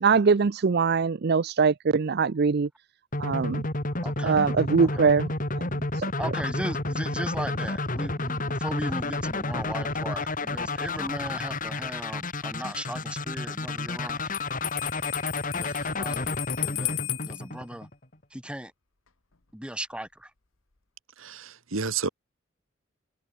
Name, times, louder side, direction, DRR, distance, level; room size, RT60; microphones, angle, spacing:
voice 1, 0.0-2.7 3.2-3.7 4.2-6.1, right 5 dB, 55° right, 0.5 m, -23 dB
sound 1, 3.1-18.0, left 2 dB, 40° left, 5.0 m, -31 dB
voice 2, 4.0-4.5 4.8-5.1 6.2-14.3 15.6-17.9 18.3-18.7 19.5-20.3, right 1 dB, 5° right, 3.6 m, -37 dB
Bell, 14.3-17.4, left 17 dB, 90° left, 1.7 m, -34 dB
voice 3, 21.2-22.1, right 5 dB, 90° right, 1.7 m, -31 dB
head